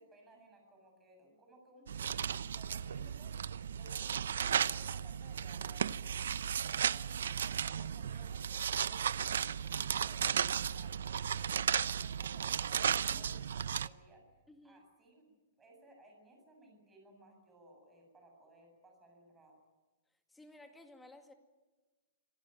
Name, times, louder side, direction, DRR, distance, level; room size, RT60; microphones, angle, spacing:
voice 1, 0.0-6.2 6.5-11.4 11.8-15.3 15.6-19.6, right 1 dB, 10° right, 2 dB, 7.6 m, -60 dB
sound 1, 1.9-13.9, right 8 dB, 85° right, 0.7 m, -35 dB
voice 2, 14.5-14.8 20.3-21.3, left 2 dB, 5° left, 5 dB, 2.1 m, -56 dB
26.5 x 17.5 x 9.3 m, 1.2 s
hypercardioid pair, 165°, 0 cm